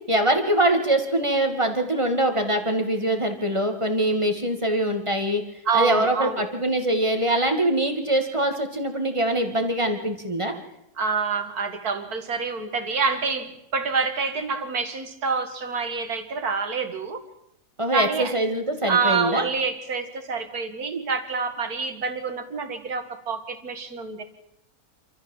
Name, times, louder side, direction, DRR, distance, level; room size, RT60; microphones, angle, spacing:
voice 1, 0.1-5.4 5.7-10.5 17.8-19.4, right 1 dB, 20° right, 5 dB, 2.3 m, -23 dB
voice 2, 5.7-6.4 11.0-17.2 17.9-18.3 18.9-24.2, right 5 dB, 75° right, 8 dB, 2.5 m, -27 dB
27.5 x 13.5 x 7.4 m, 0.83 s
omnidirectional pair, 1.6 m